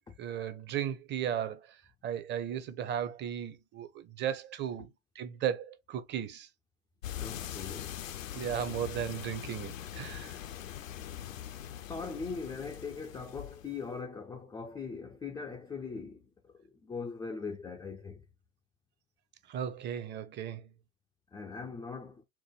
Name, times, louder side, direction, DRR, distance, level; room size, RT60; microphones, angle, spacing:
voice 1, 0.2-1.7 2.0-4.9 5.2-6.5 8.3-10.3 19.5-20.7, right 9 dB, 30° right, 0.6 m, -35 dB
sound 1, 7.0-13.9, left 11 dB, 75° left, 0.6 m, -42 dB
voice 2, 7.1-8.0 11.9-18.2 21.3-22.2, left 5 dB, 10° left, 0.3 m, -41 dB
4.5 x 2.1 x 3.0 m
figure-of-eight pair, 80°, 40 cm